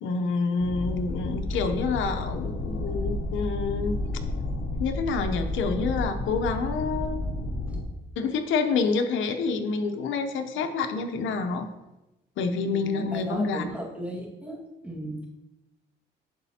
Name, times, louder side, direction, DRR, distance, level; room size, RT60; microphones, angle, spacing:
voice 1, 0.0-4.0 4.8-7.2 8.2-11.7 12.4-13.6, left 4 dB, 75° left, 6 dB, 0.7 m, -28 dB
sound 1, 0.6-7.8, left 2 dB, 60° left, 1.2 m, -31 dB
voice 2, 12.7-14.6 14.8-15.3, right 1 dB, 5° right, -3 dB, 1.8 m, -35 dB
11.5 x 4.1 x 2.8 m, 0.96 s
cardioid pair, 90°, 20 cm